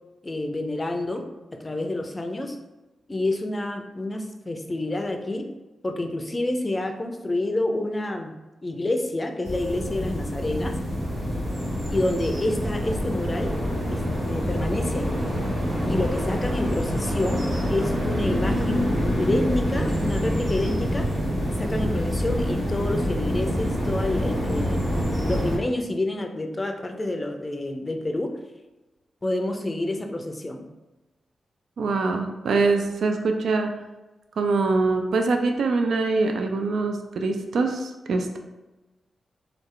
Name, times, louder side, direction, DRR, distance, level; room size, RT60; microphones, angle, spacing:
voice 1, 0.2-1.3 1.5-2.6 3.1-5.5 5.8-8.4 8.6-10.8 11.9-13.5 13.9-14.0 14.3-15.2 15.8-18.8 19.2-21.1 21.6-25.0 25.2-28.3 29.2-30.6, left 1 dB, 25° left, 5 dB, 0.4 m, -28 dB
sound 1, 9.4-25.6, equal, 60° right, 1.3 m, -26 dB
voice 2, 31.8-33.8 34.4-38.4, right 3 dB, 80° right, 5 dB, 0.3 m, -24 dB
3.2 x 2.3 x 3.6 m, 1.1 s
cardioid pair, 75°, 0 cm